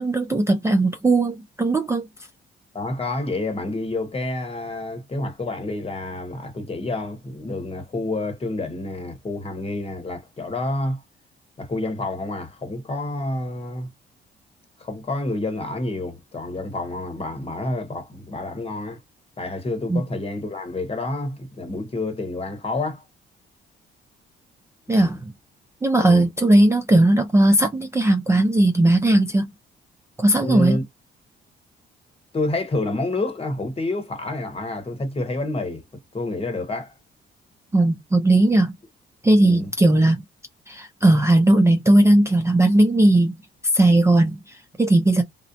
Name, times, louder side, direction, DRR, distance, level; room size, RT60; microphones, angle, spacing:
voice 1, 0.0-2.1 19.9-20.0 24.9-25.3 25.8-29.5 30.2-30.8 37.7-38.7 39.2-40.2 40.7-43.4 43.7-45.2, right 1 dB, 15° right, 0.4 m, -18 dB
voice 2, 2.7-11.0 11.6-13.9 14.8-19.0 19.4-23.0 24.9-25.1 26.0-26.3 30.4-30.8 32.3-35.8 36.1-36.9 39.4-39.7, left 2 dB, 30° left, 1.0 m, -28 dB
2.4 x 2.0 x 2.5 m
cardioid pair, 90°, 20 cm